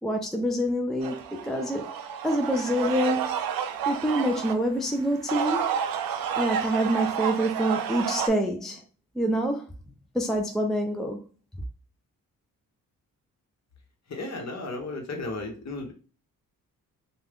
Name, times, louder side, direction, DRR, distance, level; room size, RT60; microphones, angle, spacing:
voice 1, 0.0-2.0 2.2-3.4 3.9-5.7 6.4-8.8 9.1-9.7 10.1-11.2, equal, ahead, 0.5 m, -26 dB
sound 1, 1.0-4.5 5.1-8.3, right 8 dB, 70° right, 0.5 m, -30 dB
voice 2, 14.1-15.9, left 2 dB, 45° left, 1.1 m, -34 dB
2.4 x 2.4 x 3.5 m
supercardioid pair, 55°, 36 cm